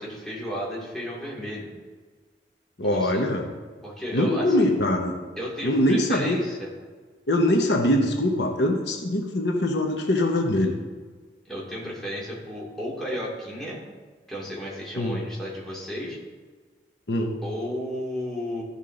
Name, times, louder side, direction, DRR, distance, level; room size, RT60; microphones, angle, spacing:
voice 1, 0.0-1.7 2.8-3.3 3.8-4.7 5.4-6.7 11.5-13.8 14.3-16.2 17.4-18.6, equal, ahead, -6 dB, 2.4 m, -33 dB
voice 2, 2.8-3.4 4.1-5.1 5.6-6.4 7.3-10.7 15.0-15.2 17.1-17.4, left 1 dB, 75° left, 2 dB, 1.0 m, -23 dB
13.5 x 5.5 x 3.8 m, 1.5 s
head